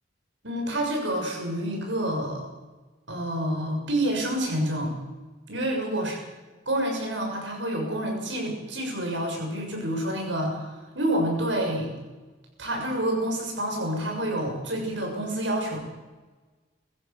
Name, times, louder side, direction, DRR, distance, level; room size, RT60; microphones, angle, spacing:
voice 1, 0.4-2.5 3.1-4.9 5.5-6.2 6.7-11.9 12.6-15.8, right 1 dB, 75° right, 1 dB, 7.1 m, -28 dB
24.5 x 15.0 x 7.1 m, 1.2 s
head